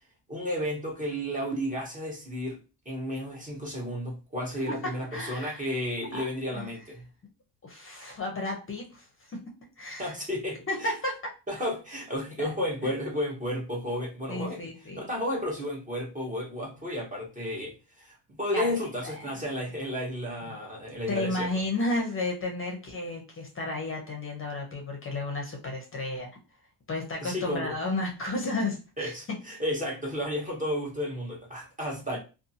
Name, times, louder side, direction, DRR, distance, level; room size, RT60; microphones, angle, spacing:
voice 1, 0.3-2.6 2.9-7.0 10.0-10.9 11.5-21.5 27.2-27.8 29.0-32.2, equal, 20° right, -2 dB, 0.7 m, -32 dB
voice 2, 5.1-5.6 6.1-6.2 6.5-6.7 7.6-9.4 9.8-10.1 10.7-11.2 12.4-12.5 14.3-15.0 18.5-18.7 19.0-19.3 20.4-20.6 21.1-26.3 26.9-29.1 32.1-32.2, left 2 dB, 30° left, 1 dB, 0.6 m, -32 dB
2.6 x 2.3 x 2.6 m, 0.31 s
cardioid pair, 145°, 45 cm